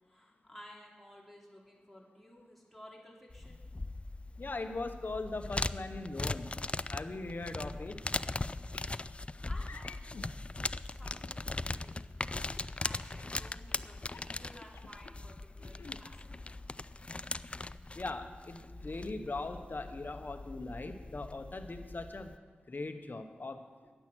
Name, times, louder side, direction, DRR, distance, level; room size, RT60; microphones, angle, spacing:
voice 1, 0.0-3.6 9.5-10.1 10.4-12.1 12.8-16.6 23.8-23.9, equal, ahead, -3 dB, 3.1 m, -55 dB
sound 1, 3.3-22.4, left 2 dB, 30° left, 0.3 m, -40 dB
voice 2, 4.4-6.5 6.9-8.0 17.9-22.3 22.7-23.6, left 2 dB, 55° left, 7 dB, 1.0 m, -40 dB
sound 2, 8.7-8.9 9.6-10.3 11.0-11.7 13.2-13.5 14.0-15.1 15.6-16.0, left 5 dB, 85° left, 0.6 m, -51 dB
10.5 x 9.0 x 6.3 m, 1.4 s
cardioid pair, 45°, 4 cm